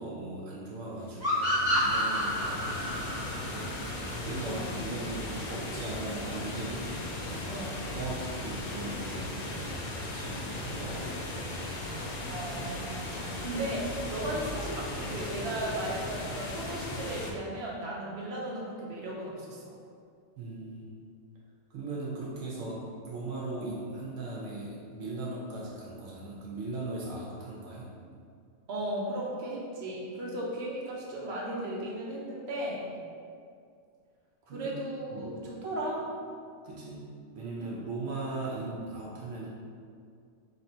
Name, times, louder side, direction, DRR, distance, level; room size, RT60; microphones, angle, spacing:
voice 1, 0.0-6.8 7.3-11.4 20.4-21.0 21.7-28.2 34.5-34.7 35.1-35.5 36.6-37.1 37.3-39.5, right 2 dB, 75° right, -5 dB, 1.0 m, -39 dB
sound 1, 1.1-17.3, left 2 dB, 75° left, 0.3 m, -37 dB
sound 2, 1.2-4.6, equal, 35° right, 1.2 m, -29 dB
voice 2, 7.5-7.8 12.2-19.7 28.7-32.8 34.5-36.1 37.6-37.8, right 1 dB, 55° right, -4 dB, 0.9 m, -36 dB
3.2 x 2.8 x 4.3 m, 2.3 s
omnidirectional pair, 1.4 m